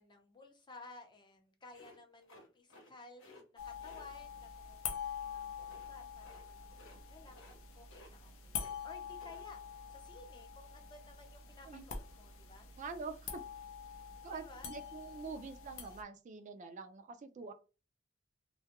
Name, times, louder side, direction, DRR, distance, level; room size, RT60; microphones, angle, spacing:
voice 1, 0.0-6.6 6.9-9.6 9.9-12.7 14.3-14.7, left 2 dB, 25° left, 4 dB, 0.5 m, -56 dB
sound 1, 1.7-2.9 3.2-3.4 3.8-4.1 5.6-5.9 6.2-6.4 6.7-7.0 7.3-7.6 7.8-8.7 9.0-9.4, left 1 dB, 65° left, 0.9 m, -58 dB
sound 2, 3.6-16.0, left 7 dB, 85° left, 0.5 m, -46 dB
voice 2, 12.8-13.4 14.2-17.5, right 4 dB, 40° right, 8 dB, 0.3 m, -45 dB
2.2 x 2.2 x 2.8 m, 0.31 s
head